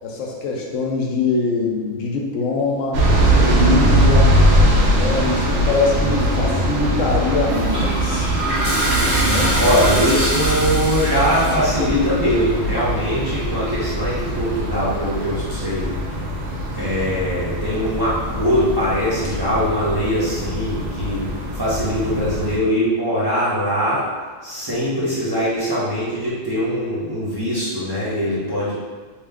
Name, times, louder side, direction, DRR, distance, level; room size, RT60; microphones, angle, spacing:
voice 1, 0.0-3.0 3.4-4.3 4.9-8.3 9.2-9.6, left 3 dB, 80° left, -1 dB, 1.0 m, -23 dB
sound 1, 2.9-22.6, right 1 dB, 70° right, 0.9 m, -21 dB
Toilet flush, 7.4-11.7, right 1 dB, 50° right, 1.2 m, -23 dB
voice 2, 9.6-15.9 16.8-21.2 21.5-24.1 24.4-28.7, equal, 25° right, -10 dB, 0.6 m, -21 dB
3.0 x 2.3 x 3.4 m, 1.4 s
omnidirectional pair, 1.3 m